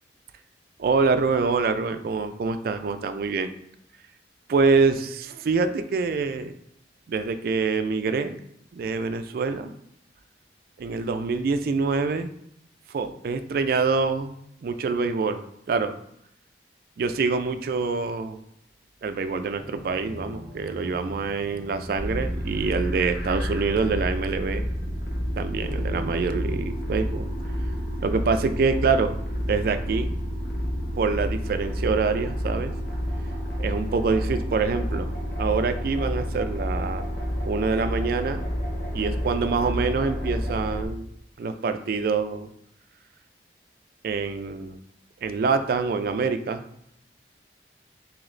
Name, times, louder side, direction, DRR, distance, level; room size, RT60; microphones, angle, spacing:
voice 1, 0.8-3.5 4.5-6.6 7.1-8.4 8.7-9.6 10.8-12.3 12.9-14.3 14.6-15.4 15.7-15.9 17.0-18.4 19.0-24.6 25.4-27.3 28.0-29.2 29.5-30.1 31.0-32.7 33.6-35.1 35.4-37.1 37.4-38.4 38.9-41.1 41.4-42.5 44.0-44.8 45.2-46.6, right 4 dB, 55° right, 9 dB, 0.3 m, -25 dB
sound 1, 19.6-27.3, equal, 15° left, 0.9 m, -43 dB
sound 2, 21.9-40.8, equal, 60° left, 0.8 m, -29 dB
3.8 x 2.8 x 3.1 m, 0.73 s
head